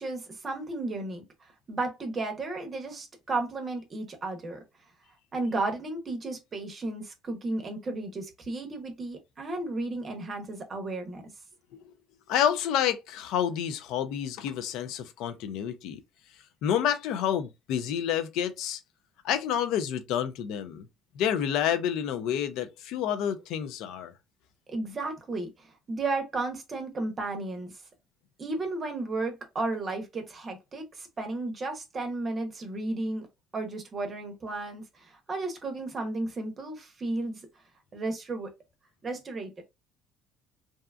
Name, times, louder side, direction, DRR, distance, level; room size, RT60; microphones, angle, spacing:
voice 1, 0.0-4.6 5.3-11.2 24.7-27.7 28.4-33.3 33.5-37.5 37.9-38.5 39.0-39.6, right 2 dB, 35° right, 0.7 m, -33 dB
voice 2, 12.3-16.0 16.6-18.8 19.2-20.9 21.2-24.1, left 9 dB, 75° left, 0.5 m, -29 dB
2.7 x 2.3 x 2.2 m
cardioid pair, 105°, 0 cm